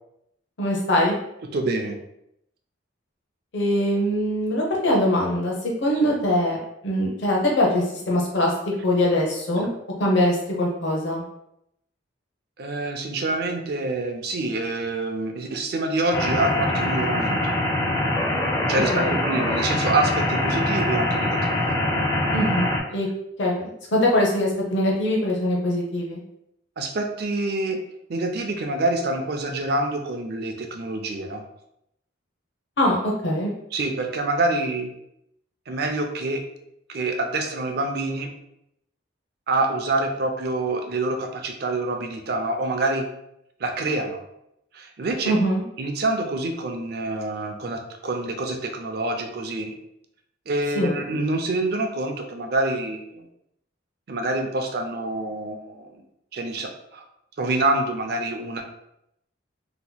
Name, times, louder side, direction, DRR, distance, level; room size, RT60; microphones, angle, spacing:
voice 1, 0.6-1.1 3.5-6.6 6.8-8.5 8.8-9.7 10.0-11.2 18.9-19.2 22.3-23.1 23.4-26.2 32.8-33.5 45.2-45.6 50.7-51.0, left 1 dB, 65° left, -2 dB, 0.7 m, -22 dB
voice 2, 1.5-2.0 6.0-6.1 9.6-9.7 12.6-17.5 18.7-21.7 26.8-27.8 28.1-31.4 33.7-34.9 35.7-36.4 36.9-38.3 39.5-43.0 43.6-44.2 44.7-45.4 45.8-49.8 50.5-53.2 54.1-55.9 56.3-57.0 57.4-58.6, right 2 dB, 50° right, 4 dB, 0.4 m, -26 dB
sound 1, 16.1-22.8, left 1 dB, 15° left, 0.4 m, -23 dB
2.9 x 2.2 x 3.9 m, 0.79 s
head